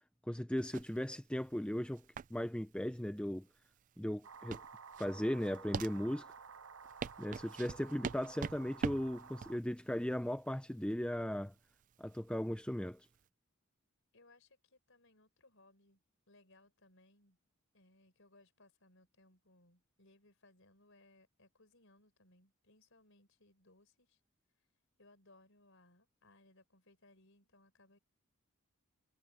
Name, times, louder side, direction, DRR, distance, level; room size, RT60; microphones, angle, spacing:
voice 1, 0.3-2.0 2.3-3.4 4.0-4.6 5.0-6.2 7.2-11.5 12.0-13.1, equal, 5° left, 0.6 m, -37 dB
sound 1, 0.6-13.2, right 5 dB, 35° right, 0.3 m, -45 dB
sound 2, 4.2-9.6, right 5 dB, 60° right, 0.7 m, -53 dB
voice 2, 14.1-17.4 17.7-24.2 25.0-28.0, left 2 dB, 60° left, 5.4 m, -66 dB
head